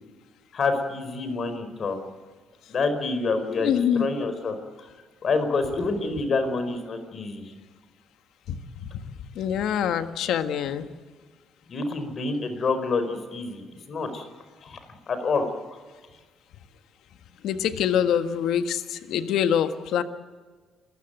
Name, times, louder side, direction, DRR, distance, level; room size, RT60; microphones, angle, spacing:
voice 1, 0.5-2.0 2.7-4.9 5.2-7.5 11.7-14.3 14.6-14.8 15.1-15.4 15.7-15.8, left 3 dB, 50° left, 9 dB, 4.7 m, -27 dB
voice 2, 3.5-4.0 8.5-9.0 9.3-10.9 17.4-20.0, left 9 dB, 80° left, 9 dB, 1.6 m, -25 dB
27.5 x 15.5 x 9.2 m, 1.4 s
cardioid pair, 90°, 0 cm